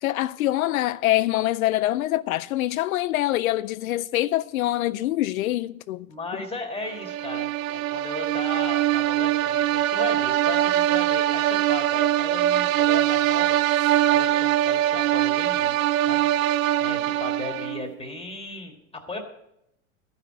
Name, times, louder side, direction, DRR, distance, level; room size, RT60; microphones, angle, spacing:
voice 1, 0.0-6.1, left 15 dB, 85° left, 0.5 m, -24 dB
voice 2, 6.1-13.8 14.0-16.5 16.8-19.2, left 2 dB, 15° left, 1.8 m, -36 dB
sound 1, 6.9-17.9, right 13 dB, 75° right, 0.6 m, -22 dB
13.0 x 5.8 x 8.7 m
hypercardioid pair, 110°, 41 cm